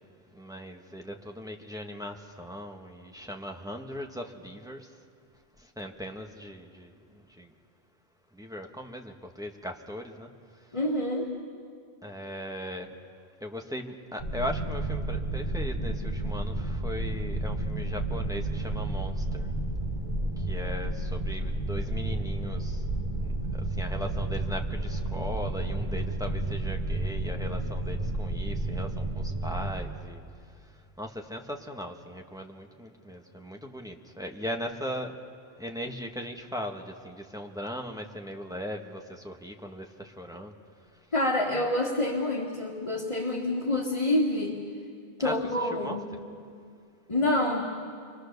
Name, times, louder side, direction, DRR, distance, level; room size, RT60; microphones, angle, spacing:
voice 1, 0.3-4.9 5.6-7.5 8.3-10.3 10.6-10.8 12.0-12.9 13.4-19.5 20.4-22.8 23.2-30.2 30.6-35.2 35.6-40.5 45.2-45.3 45.6-46.0, equal, 5° right, 1 dB, 1.5 m, -39 dB
voice 2, 10.7-11.3 23.4-23.6 41.1-44.6 45.2-46.0 47.1-47.8, left 1 dB, 30° left, -3 dB, 2.1 m, -27 dB
sound 1, 14.2-29.7, right 2 dB, 30° right, 2.2 m, -31 dB
29.0 x 24.0 x 6.7 m, 2.2 s
omnidirectional pair, 1.0 m